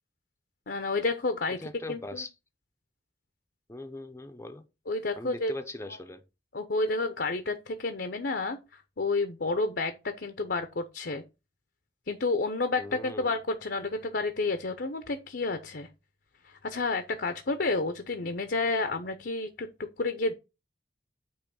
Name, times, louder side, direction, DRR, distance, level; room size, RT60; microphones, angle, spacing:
voice 1, 0.7-1.6 1.9-2.2 4.9-5.5 6.5-11.2 12.1-15.9 16.4-19.7 20.0-20.3, left 3 dB, 65° left, 0.8 m, -30 dB
voice 2, 1.6-2.3 3.7-4.6 5.2-6.2 12.8-13.3, left 2 dB, 15° left, 0.7 m, -40 dB
8.8 x 3.2 x 6.2 m
head